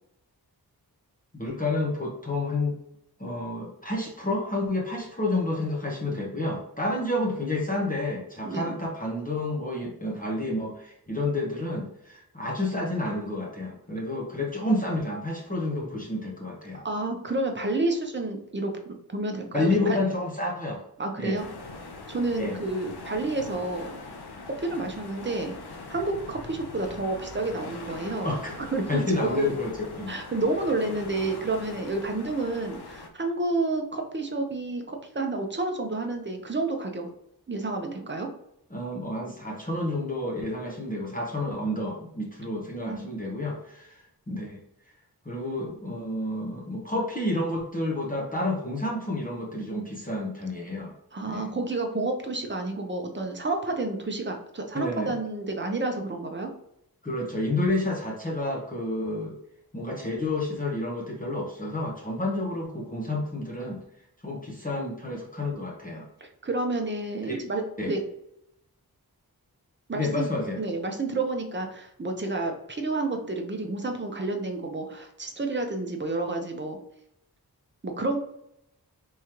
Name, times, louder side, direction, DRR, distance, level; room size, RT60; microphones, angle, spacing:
voice 1, 1.3-2.8 3.2-16.8 19.5-20.8 21.2-21.4 22.4-22.6 28.2-29.7 30.0-30.1 38.7-44.6 45.2-50.9 51.3-51.5 54.7-55.1 57.0-59.4 59.7-63.8 64.2-66.1 67.3-67.4 67.8-67.9 69.9-70.6, left 2 dB, 20° left, -3 dB, 0.9 m, -30 dB
voice 2, 16.8-20.0 21.0-21.4 22.1-23.9 24.5-25.6 25.9-28.3 28.6-29.5 30.1-37.1 37.5-38.3 42.9-43.0 51.1-56.5 66.2-68.0 69.9-70.3 70.6-76.8 77.8-78.2, right 2 dB, 30° right, 3 dB, 0.7 m, -30 dB
sound 1, 21.4-33.1, left 3 dB, 80° left, 0.7 m, -42 dB
3.7 x 3.0 x 2.9 m, 0.78 s
wide cardioid pair, 55°, 38 cm